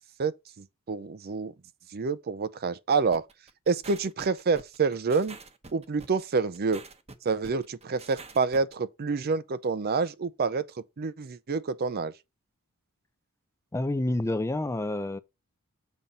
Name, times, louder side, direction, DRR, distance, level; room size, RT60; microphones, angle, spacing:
voice 1, 0.2-1.5 1.9-3.2 3.7-5.4 5.7-6.8 7.2-10.6 11.0-12.1, right 4 dB, 45° right, 0.5 m, -28 dB
sound 1, 3.1-8.7, right 3 dB, 30° right, 0.9 m, -47 dB
voice 2, 13.7-15.2, left 1 dB, 15° left, 0.4 m, -28 dB
7.2 x 3.8 x 5.5 m
head